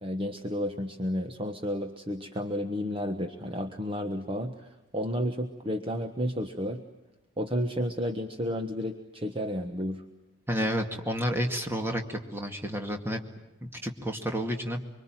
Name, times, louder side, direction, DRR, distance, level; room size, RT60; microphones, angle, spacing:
voice 1, 0.0-6.8 7.4-10.0, equal, 25° right, 6 dB, 1.2 m, -32 dB
voice 2, 10.5-13.2 13.6-14.8, equal, 10° right, 4 dB, 2.2 m, -30 dB
25.0 x 24.5 x 9.1 m, 1.0 s
head